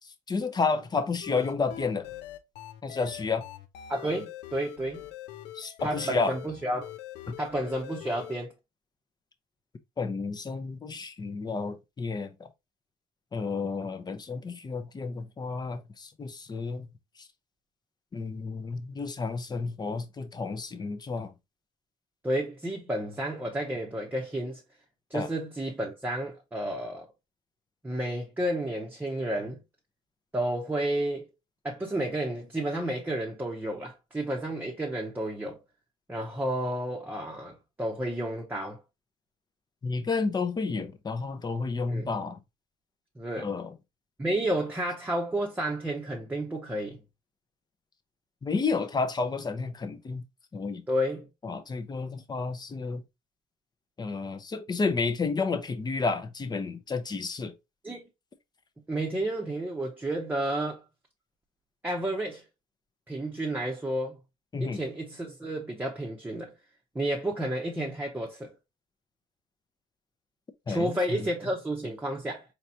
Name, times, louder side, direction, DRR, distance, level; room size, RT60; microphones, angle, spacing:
voice 1, 0.3-2.1 2.8-3.5 5.5-6.3 7.3-7.4 10.0-12.5 13.3-16.9 18.1-21.3 25.1-25.3 39.8-42.4 43.4-43.7 48.4-50.2 50.5-50.8 51.4-53.0 54.0-57.5 64.5-64.8 70.7-71.3, left 4 dB, 25° left, 0.7 m, -31 dB
sound 1, 1.2-8.4, left 13 dB, 80° left, 0.6 m, -43 dB
voice 2, 3.9-5.1 5.8-6.9 7.4-8.5 22.2-24.6 25.1-27.1 27.8-29.6 30.3-31.3 31.6-35.6 36.1-38.8 41.9-42.1 43.2-43.5 44.2-47.0 50.9-51.3 57.8-58.1 58.9-60.8 61.8-62.4 63.1-64.2 64.6-66.5 66.9-68.5 70.7-72.4, right 1 dB, 10° right, 0.9 m, -31 dB
4.1 x 3.3 x 2.8 m
cardioid pair, 110°, 17 cm